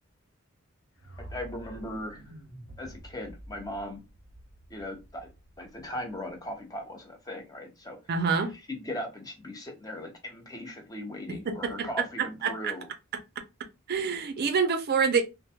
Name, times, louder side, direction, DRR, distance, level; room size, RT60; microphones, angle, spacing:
sound 1, 1.0-7.0, right 1 dB, 55° left, 1.1 m, -49 dB
voice 1, 1.3-2.2 2.8-4.0 4.7-5.3 5.6-8.0 8.7-12.9, left 1 dB, 15° left, 0.6 m, -38 dB
voice 2, 8.1-8.5 11.3-12.7 13.1-13.2 13.9-15.2, right 5 dB, 45° right, 0.4 m, -27 dB
2.2 x 2.1 x 2.7 m
head